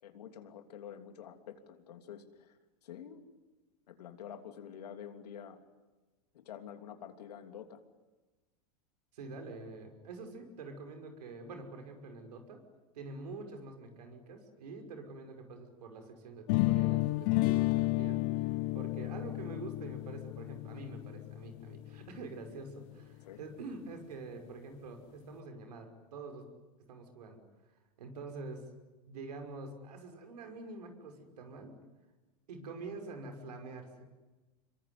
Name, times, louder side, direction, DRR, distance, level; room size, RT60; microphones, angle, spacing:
voice 1, 0.0-2.6 2.8-3.2 3.9-5.6 6.3-7.8 23.2-23.4, left 9 dB, 80° left, 6 dB, 3.2 m, -48 dB
voice 2, 9.1-12.6 12.9-26.5 26.9-27.4 28.0-28.6 29.1-31.8 32.5-34.1, right 3 dB, 80° right, 5 dB, 5.9 m, -46 dB
sound 1, 16.5-22.4, left 20 dB, 55° left, 0.9 m, -32 dB
27.0 x 23.0 x 9.7 m, 1.2 s
hypercardioid pair, 110°, 20 cm